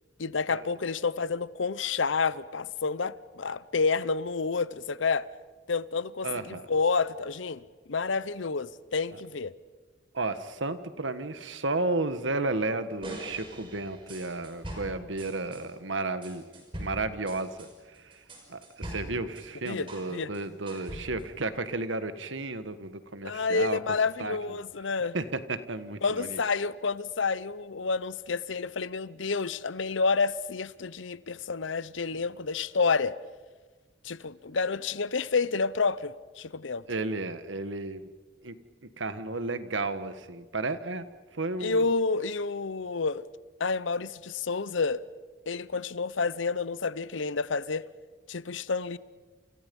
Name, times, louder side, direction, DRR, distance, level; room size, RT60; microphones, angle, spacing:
voice 1, 0.2-5.3 5.7-7.6 7.9-9.5 19.6-20.3 23.2-25.1 26.0-33.1 34.0-36.8 41.6-43.3 43.6-45.0 45.5-47.9 48.3-49.0, left 4 dB, 85° left, 0.8 m, -29 dB
voice 2, 6.2-6.6 10.1-16.5 16.8-18.2 18.5-23.8 24.2-24.4 25.1-26.4 36.9-38.1 38.4-38.5 39.0-41.1 41.3-41.9, right 2 dB, 80° right, 1.6 m, -33 dB
sound 1, 13.0-15.6 16.2-20.1 20.3-21.4, right 1 dB, 25° right, 5.6 m, -42 dB
29.5 x 28.5 x 5.4 m
head